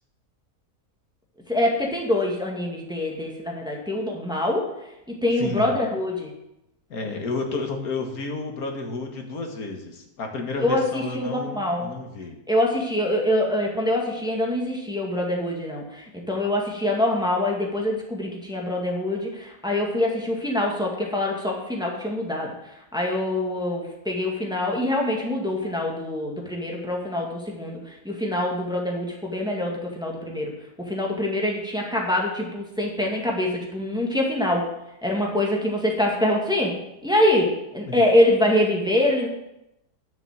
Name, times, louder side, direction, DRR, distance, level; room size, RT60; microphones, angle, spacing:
voice 1, 1.5-4.7 5.2-6.3 10.6-11.9 12.5-22.5 22.9-30.5 30.8-34.6 35.0-36.7 37.0-39.3, left 1 dB, 5° right, -2 dB, 2.2 m, -24 dB
voice 2, 5.4-5.7 6.9-12.4 37.9-38.0, left 3 dB, 65° left, 3 dB, 2.1 m, -31 dB
10.5 x 7.1 x 7.6 m, 0.87 s
omnidirectional pair, 1.7 m